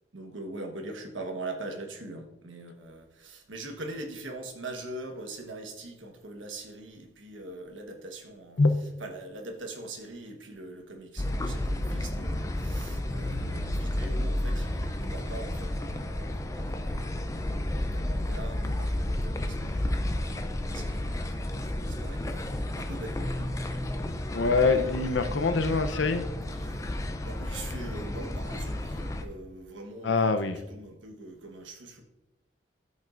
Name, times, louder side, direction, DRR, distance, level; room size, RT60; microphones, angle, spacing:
voice 1, 0.1-8.6 9.0-23.9 26.6-26.9 27.2-30.1 30.7-32.0, right 2 dB, 85° right, 4 dB, 1.2 m, -42 dB
sound 1, 11.2-29.2, left 1 dB, 15° left, 0.4 m, -32 dB
voice 2, 24.3-26.3 30.0-30.6, left 3 dB, 80° left, 9 dB, 0.7 m, -24 dB
12.5 x 5.4 x 2.5 m, 0.93 s
head